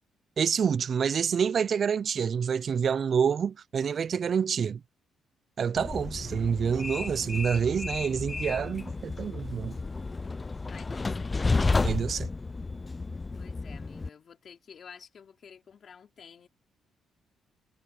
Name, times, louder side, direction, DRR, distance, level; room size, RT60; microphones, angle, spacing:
voice 1, 0.4-4.8 5.6-9.8 11.8-12.3, right 7 dB, 50° right, 0.4 m, -27 dB
Train, 5.8-14.1, left 3 dB, 25° left, 0.4 m, -32 dB
voice 2, 10.7-11.3 13.4-16.5, left 7 dB, 50° left, 2.8 m, -51 dB
cardioid pair, 90°, 0 cm